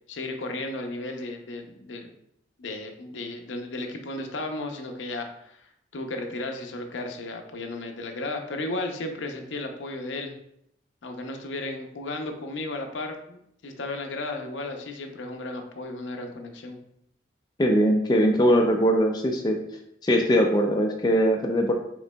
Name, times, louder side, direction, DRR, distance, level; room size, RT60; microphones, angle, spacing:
voice 1, 0.1-2.1 2.6-5.7 5.9-10.3 11.0-16.8, left 2 dB, 85° left, 4 dB, 0.6 m, -34 dB
voice 2, 17.6-19.6 20.0-21.7, equal, 20° left, 2 dB, 0.3 m, -21 dB
5.0 x 3.8 x 2.2 m, 0.75 s
head